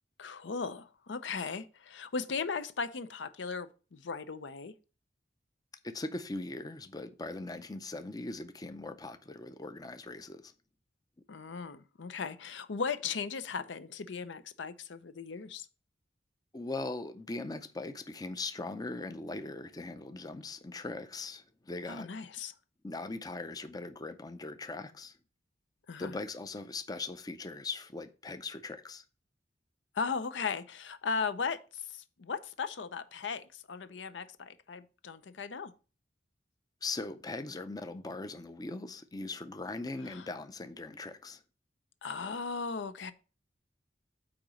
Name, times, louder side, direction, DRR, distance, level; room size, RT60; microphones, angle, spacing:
voice 1, 0.2-4.7 11.3-15.7 21.9-22.5 25.9-26.2 30.0-31.6 31.9-35.7 40.1-40.3 42.0-43.1, left 5 dB, 80° left, 0.6 m, -37 dB
voice 2, 5.8-10.5 16.5-22.1 22.8-25.1 26.0-29.0 36.8-41.4, left 3 dB, 20° left, 0.5 m, -40 dB
8.6 x 3.0 x 6.2 m
head